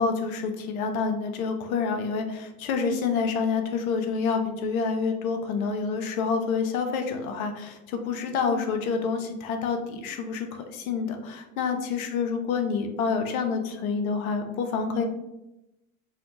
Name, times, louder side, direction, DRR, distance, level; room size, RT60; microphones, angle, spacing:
voice 1, 0.0-15.0, left 5 dB, 80° left, 6 dB, 0.5 m, -28 dB
2.8 x 2.1 x 2.7 m, 0.92 s
hypercardioid pair, 65°, 41 cm